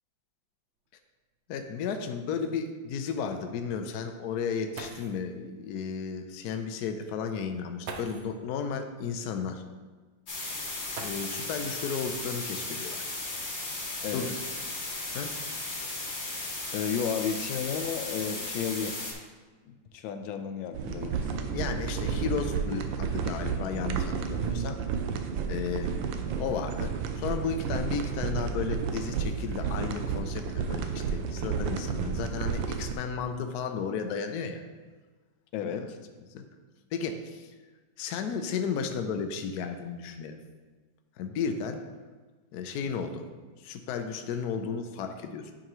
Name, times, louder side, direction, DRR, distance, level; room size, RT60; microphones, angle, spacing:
sound 1, 0.8-0.9 1.3-1.4 2.1-2.2 4.4-4.5 4.7-5.3 6.6-6.7 7.8-8.4 10.9-11.6 13.0-13.1 13.8-15.3 16.0-16.4 16.7-17.1, right 3 dB, 70° right, 0.6 m, -44 dB
voice 1, 1.5-9.6 11.0-13.1 14.1-14.3 15.1-15.3 21.5-24.8 25.4-25.9 26.4-34.6 35.6-35.8 36.3-36.4 36.9-37.5 38.0-40.4 41.2-41.8 42.5-43.3 43.6-45.5, left 6 dB, 70° left, 6 dB, 1.0 m, -34 dB
sound 2, 10.3-19.1, left 2 dB, 40° left, 1.4 m, -36 dB
voice 2, 14.0-14.4 16.7-19.0 19.7-21.3 35.5-36.0, left 7 dB, 90° left, 6 dB, 1.3 m, -33 dB
sound 3, 20.7-32.9, right 6 dB, 85° right, 1.4 m, -31 dB
9.9 x 5.0 x 3.0 m, 1.3 s
omnidirectional pair, 2.1 m